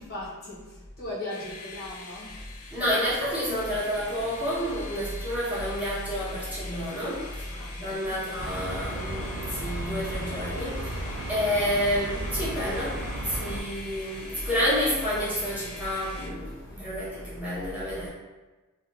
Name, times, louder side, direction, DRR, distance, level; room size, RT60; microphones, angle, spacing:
voice 1, 0.0-2.5 5.0-5.1 7.6-8.2 11.6-11.8 16.7-16.9, left 1 dB, 50° left, -7 dB, 0.8 m, -39 dB
sound 1, 1.3-16.3, left 3 dB, 90° left, 0.4 m, -44 dB
voice 2, 2.7-18.1, equal, 5° right, -10 dB, 0.8 m, -29 dB
sound 2, 8.4-13.6, right 1 dB, 55° right, 0.4 m, -34 dB
2.8 x 2.3 x 2.4 m, 1.2 s
head